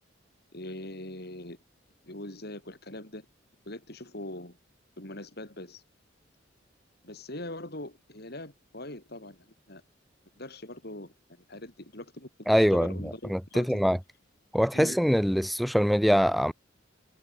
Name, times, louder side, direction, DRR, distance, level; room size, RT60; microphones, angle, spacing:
voice 1, 0.5-1.6 2.0-3.3 3.7-4.6 5.0-5.8 7.0-9.8 10.4-13.8 14.7-15.0, left 1 dB, 55° left, 6.2 m, -42 dB
voice 2, 12.5-14.0 14.5-16.5, equal, ahead, 0.4 m, -24 dB
head